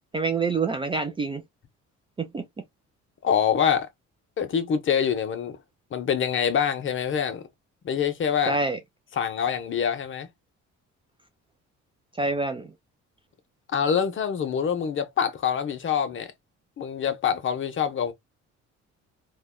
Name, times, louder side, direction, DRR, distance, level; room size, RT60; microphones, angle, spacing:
voice 1, 0.1-1.4 2.2-2.4 8.5-8.8 12.1-12.7, right 3 dB, 20° right, 0.4 m, -26 dB
voice 2, 3.2-3.9 4.4-5.6 5.9-7.4 7.8-8.6 9.1-10.3 13.7-16.3 16.8-18.1, left 7 dB, 40° left, 0.7 m, -25 dB
3.4 x 2.2 x 2.2 m
cardioid pair, 115°, 30 cm